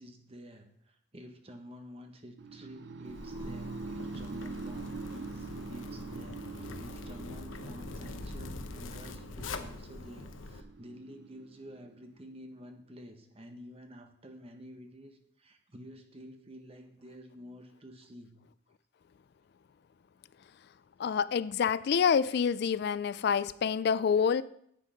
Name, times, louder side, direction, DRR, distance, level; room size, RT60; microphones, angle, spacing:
voice 1, 0.0-18.4, equal, 30° right, 1.3 m, -50 dB
sound 1, 2.4-12.3, right 4 dB, 60° right, 0.5 m, -44 dB
Zipper (clothing), 3.1-10.6, left 3 dB, 85° left, 0.8 m, -44 dB
voice 2, 21.0-24.4, left 6 dB, 55° left, 0.3 m, -27 dB
10.0 x 8.4 x 5.1 m
head